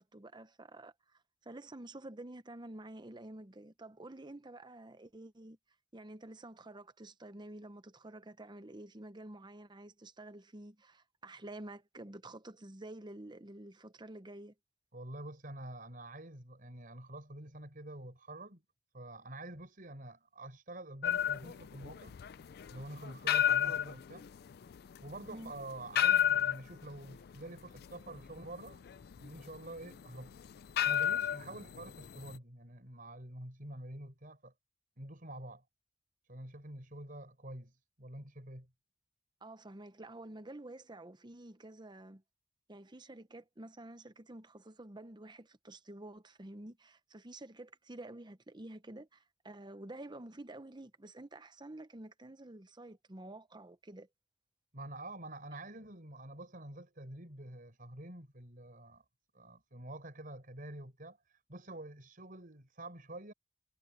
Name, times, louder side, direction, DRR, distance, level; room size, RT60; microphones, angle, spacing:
voice 1, 0.0-5.6 5.9-14.5 25.3-25.5 39.4-42.2 42.7-54.1, right 1 dB, 25° right, 0.9 m, -49 dB
voice 2, 14.9-18.6 18.9-22.2 22.7-24.3 25.0-28.8 29.2-30.4 30.8-34.5 35.0-35.6 36.3-38.7 54.7-59.0 59.3-63.3, right 1 dB, 50° right, 5.0 m, -47 dB
sound 1, 21.0-32.4, left 10 dB, 55° left, 0.4 m, -33 dB
head